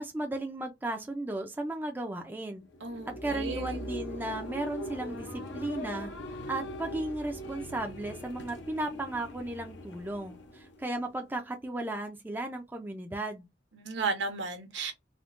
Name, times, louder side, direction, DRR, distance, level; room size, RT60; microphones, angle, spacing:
voice 1, 0.0-2.6 3.1-6.1 6.5-13.5, right 1 dB, 10° right, 0.3 m, -35 dB
sound 1, 2.6-11.2, left 1 dB, 75° left, 0.6 m, -41 dB
voice 2, 2.8-3.8 13.7-14.9, right 4 dB, 75° right, 0.9 m, -34 dB
3.5 x 2.1 x 2.4 m
head